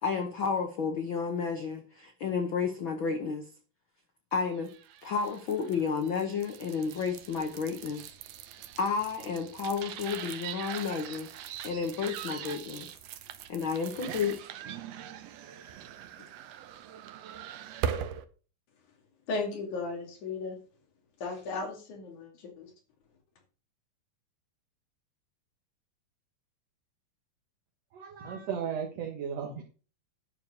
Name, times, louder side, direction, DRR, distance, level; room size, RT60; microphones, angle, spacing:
voice 1, 0.0-3.4 4.3-4.7 5.0-8.0 8.8-12.9 13.5-14.4, left 5 dB, 90° left, 5 dB, 1.0 m, -31 dB
sound 1, 4.6-18.2, right 9 dB, 75° right, 1.5 m, -41 dB
voice 2, 19.3-20.6 21.2-22.7, left 3 dB, 60° left, 2 dB, 3.9 m, -35 dB
voice 3, 27.9-29.6, right 7 dB, 60° right, 1 dB, 2.1 m, -35 dB
11.5 x 4.6 x 6.6 m, 0.38 s
omnidirectional pair, 4.0 m